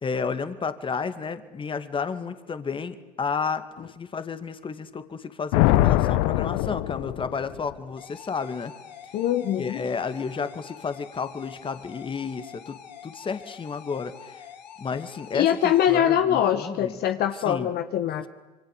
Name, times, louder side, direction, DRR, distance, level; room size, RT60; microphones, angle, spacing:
voice 1, 0.0-8.7 9.6-14.5 14.8-16.9 17.4-17.7, left 5 dB, 25° left, 11 dB, 2.3 m, -32 dB
Thunder, 5.5-7.7, left 15 dB, 65° left, 1.2 m, -22 dB
sound 1, 8.0-16.0, left 9 dB, 90° left, 3.5 m, -45 dB
voice 2, 9.1-9.8 15.3-18.2, left 10 dB, 50° left, 8 dB, 1.5 m, -23 dB
27.0 x 24.5 x 8.5 m, 1.2 s
hypercardioid pair, 90°, 21 cm